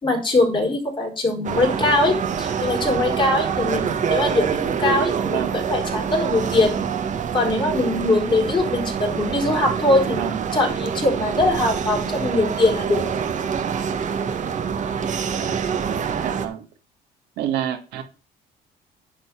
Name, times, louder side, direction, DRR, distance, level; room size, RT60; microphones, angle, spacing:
voice 1, 0.0-6.8 7.3-13.1, left 2 dB, 30° left, 0 dB, 4.2 m, -22 dB
sound 1, 1.4-16.5, right 7 dB, 45° right, 1.3 m, -26 dB
voice 2, 1.6-1.9 5.2-5.6 10.2-10.5 16.2-16.7 17.4-18.0, right 10 dB, 85° right, 7 dB, 1.7 m, -28 dB
10.5 x 4.1 x 6.9 m, 0.34 s
cardioid pair, 110°, 17 cm